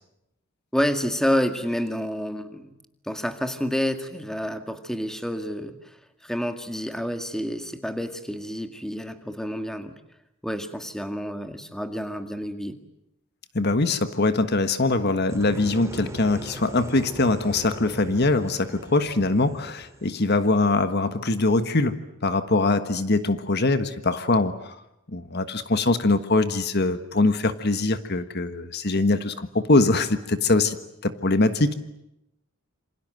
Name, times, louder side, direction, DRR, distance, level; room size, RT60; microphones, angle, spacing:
voice 1, 0.7-2.8 3.0-6.0 6.2-9.9 10.4-12.8, equal, ahead, 7 dB, 1.9 m, -29 dB
voice 2, 13.5-24.7 25.1-30.8 31.0-31.7, left 2 dB, 50° left, 10 dB, 1.4 m, -22 dB
sound 1, 15.3-21.2, equal, 15° right, 2.6 m, -40 dB
28.0 x 26.5 x 7.7 m, 0.83 s
head